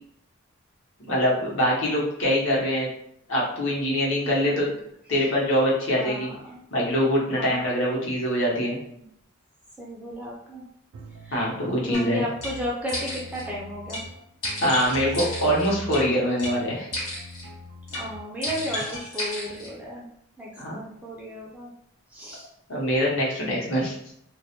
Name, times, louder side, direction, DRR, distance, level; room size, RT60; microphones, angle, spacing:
voice 1, 1.0-2.9 3.3-4.7 5.1-6.3 6.7-8.8 11.3-12.2 14.6-16.9 20.6-20.8 22.7-23.9, equal, 65° left, -5 dB, 0.8 m, -24 dB
voice 2, 5.9-6.7 7.4-7.7 9.0-9.1 9.8-10.6 11.2-11.4 11.9-14.0 17.9-20.1 20.4-21.7 22.1-22.5, equal, 5° right, -5 dB, 0.3 m, -34 dB
sound 1, 10.9-18.8, right 1 dB, 90° right, 0.4 m, -42 dB
sound 2, 11.9-12.0 12.4-12.5 12.9-13.4 13.9-14.0 14.4-16.0 16.4-16.5 16.9-17.5 17.9-18.0 18.4-19.7, left 1 dB, 85° left, 1.0 m, -33 dB
2.3 x 2.1 x 2.8 m, 0.73 s
head